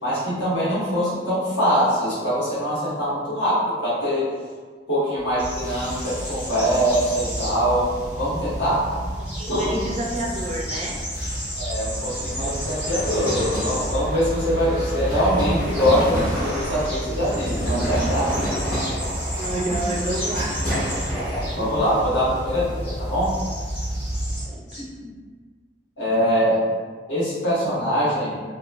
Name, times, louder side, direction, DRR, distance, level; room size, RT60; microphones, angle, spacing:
voice 1, 0.0-4.3 4.9-7.9 8.2-8.8 9.5-9.8 11.6-18.3 19.5-19.7 21.5-23.3 24.7-24.8 26.0-26.6 27.1-28.4, equal, 85° left, -10 dB, 1.3 m, -23 dB
sound 1, 5.2-22.1, equal, 55° left, 1.5 m, -32 dB
sound 2, 5.4-24.4, equal, 35° left, 0.9 m, -31 dB
voice 2, 9.2-11.0 19.3-20.6 24.4-24.6, right 1 dB, 35° right, 0 dB, 0.4 m, -29 dB
sound 3, 15.2-16.9 17.8-19.9 20.6-21.5, equal, 5° left, 0.6 m, -31 dB
3.0 x 2.1 x 2.3 m, 1.6 s
head